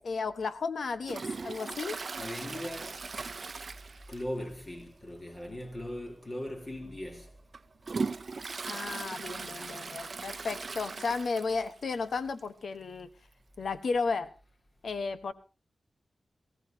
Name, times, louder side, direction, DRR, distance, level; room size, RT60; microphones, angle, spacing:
voice 1, 0.0-2.0 8.7-13.1 13.6-14.3 14.8-15.3, left 4 dB, 80° left, 1.4 m, -33 dB
Toilet flush, 1.0-4.5 4.8-4.9 5.3-5.4 6.2-6.3 6.9-11.8 12.1-12.2 12.4-12.5 13.5-13.6, right 4 dB, 60° right, 0.7 m, -38 dB
voice 2, 2.2-3.1 4.1-7.3, left 1 dB, 40° left, 3.6 m, -39 dB
19.0 x 17.0 x 2.9 m
cardioid pair, 55°, 0 cm